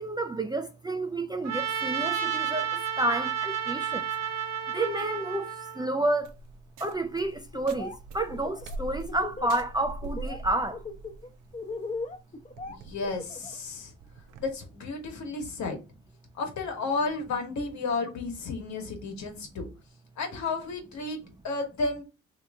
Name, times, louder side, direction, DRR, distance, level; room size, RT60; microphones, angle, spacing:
voice 1, 0.0-4.1 4.7-6.4 6.8-10.8, right 2 dB, 15° right, 0.4 m, -30 dB
Trumpet, 1.4-5.9, right 9 dB, 65° right, 0.9 m, -31 dB
sound 1, 6.2-14.5, right 2 dB, 85° right, 0.6 m, -43 dB
Laughter, 7.5-8.0 8.3-9.7 10.0-10.4 10.7-13.6, left 3 dB, 25° left, 0.7 m, -38 dB
voice 2, 12.7-13.9 14.4-15.8 16.4-19.7 20.2-21.2 21.4-22.0, left 3 dB, 65° left, 1.4 m, -32 dB
3.2 x 2.9 x 3.4 m
cardioid pair, 90°, 30 cm